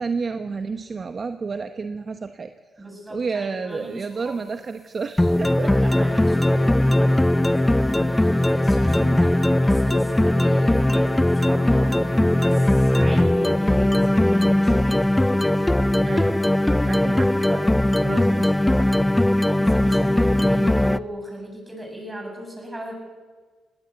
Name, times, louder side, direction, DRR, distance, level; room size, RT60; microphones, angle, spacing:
voice 1, 0.0-2.5 3.1-5.7 16.0-16.4 16.8-17.7 18.0-18.9, right 4 dB, 45° right, 8 dB, 1.0 m, -30 dB
voice 2, 2.8-4.4 5.6-9.4 9.6-15.1 15.3-15.8 19.4-22.9, right 1 dB, 15° right, 1 dB, 7.8 m, -38 dB
sound 1, 5.2-21.0, left 1 dB, 10° left, 0.5 m, -19 dB
19.0 x 18.5 x 8.2 m, 1.4 s
cardioid pair, 80°, 0 cm